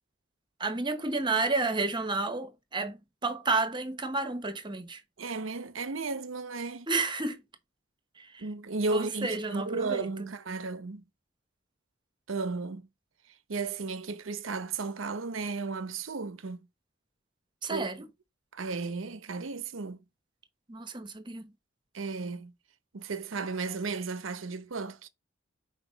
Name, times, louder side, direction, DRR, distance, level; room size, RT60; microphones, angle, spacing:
voice 1, 0.6-5.0 6.9-7.4 8.2-8.5 8.9-10.3 17.6-18.1 20.7-21.5, right 3 dB, 25° right, 1.1 m, -31 dB
voice 2, 5.2-6.9 8.4-11.0 12.3-12.8 13.5-16.6 17.7-17.9 18.5-20.0 21.9-22.5 22.9-25.1, right 4 dB, 90° right, 0.8 m, -34 dB
6.0 x 4.5 x 4.0 m
head